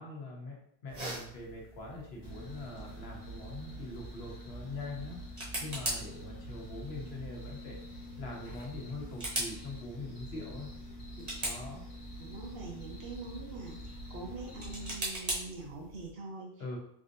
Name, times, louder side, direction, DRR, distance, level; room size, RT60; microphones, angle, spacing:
voice 1, 0.0-5.2 5.6-7.8 8.2-10.7 11.4-11.8 16.6-16.8, left 2 dB, 85° left, -1 dB, 1.1 m, -43 dB
sound 1, 0.9-16.1, right 1 dB, 40° right, 1.0 m, -43 dB
sound 2, 2.2-15.0, equal, 55° left, 1.2 m, -46 dB
voice 2, 11.2-11.5 12.2-16.5, right 3 dB, 75° right, 0 dB, 1.0 m, -44 dB
3.7 x 2.6 x 2.6 m, 0.71 s
omnidirectional pair, 1.0 m